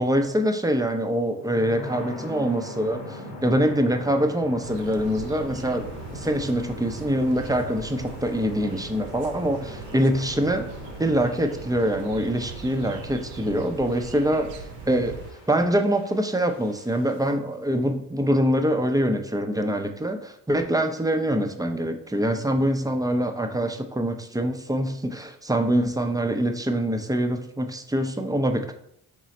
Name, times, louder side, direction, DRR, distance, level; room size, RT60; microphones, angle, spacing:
voice 1, 0.0-10.7 11.0-14.5 14.9-15.2 15.5-28.7, equal, 10° right, 5 dB, 0.6 m, -24 dB
sound 1, 1.3-17.3, left 2 dB, 75° left, 1.2 m, -41 dB
sound 2, 4.6-15.3, right 6 dB, 70° right, 0.6 m, -41 dB
3.8 x 3.2 x 4.1 m, 0.72 s
hypercardioid pair, 45°, 43 cm